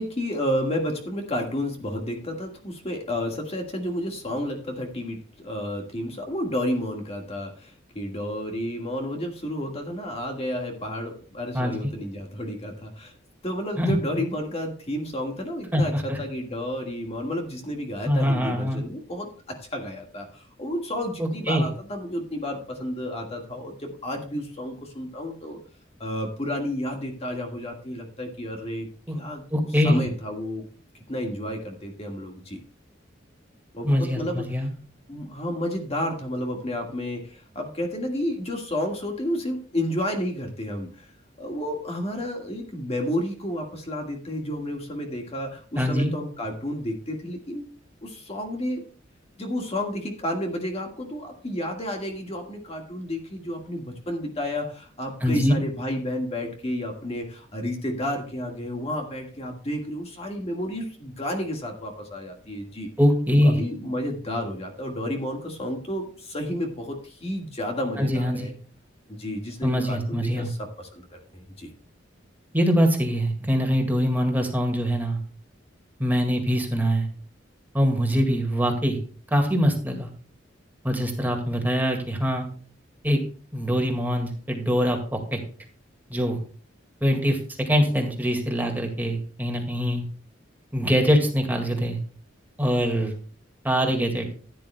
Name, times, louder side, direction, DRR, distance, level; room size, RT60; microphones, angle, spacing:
voice 1, 0.0-13.1 13.4-25.6 26.0-28.9 29.1-29.4 29.8-30.6 31.1-32.6 33.7-34.4 35.1-41.1 41.4-47.7 48.0-48.8 49.4-62.9 63.4-68.5 69.1-71.7, left 1 dB, 35° left, 2 dB, 1.7 m, -31 dB
voice 2, 11.5-11.9 13.8-13.9 15.7-16.2 18.1-18.8 21.2-21.7 29.1-29.2 29.5-30.1 33.8-34.7 45.8-46.1 55.2-55.5 63.0-63.6 68.0-68.5 69.6-70.5 72.5-75.2 76.0-77.1 77.7-79.0 79.3-80.1 80.8-82.5 83.0-83.2 83.5-85.4 86.1-86.4 87.0-87.4 87.7-90.0 90.7-92.0 92.6-93.1 93.6-94.2, equal, 10° right, 2 dB, 1.9 m, -23 dB
15.0 x 10.0 x 2.2 m, 0.42 s
head